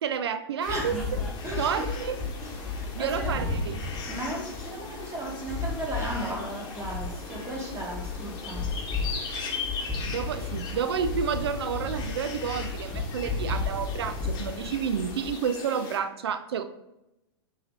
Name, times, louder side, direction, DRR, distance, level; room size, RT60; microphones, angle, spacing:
voice 1, 0.0-0.9 1.6-2.2 2.9-3.9 10.0-16.6, right 7 dB, 70° right, 11 dB, 0.4 m, -30 dB
sound 1, 0.6-16.0, left 5 dB, 30° left, 0.9 m, -40 dB
sound 2, 0.7-15.3, left 3 dB, 5° left, 1.0 m, -34 dB
voice 2, 0.7-1.0 1.4-1.9 2.4-3.5 4.0-8.7, right 1 dB, 20° right, -1 dB, 1.2 m, -35 dB
4.7 x 2.8 x 3.1 m, 0.90 s
hypercardioid pair, 110°, 14 cm